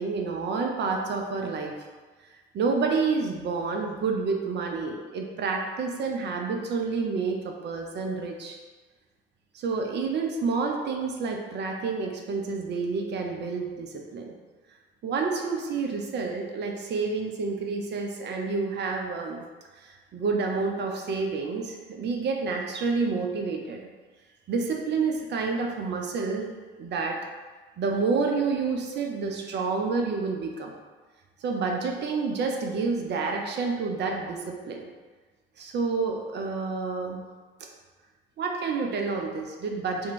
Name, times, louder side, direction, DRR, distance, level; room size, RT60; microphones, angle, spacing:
voice 1, 0.0-1.7 2.5-8.6 9.5-14.4 15.0-19.4 19.8-23.8 24.5-27.2 27.8-30.7 31.4-34.8 35.6-37.2 38.4-40.1, right 4 dB, 35° right, 2 dB, 0.5 m, -29 dB
2.5 x 2.2 x 3.7 m, 1.4 s
figure-of-eight pair, 55°, 29 cm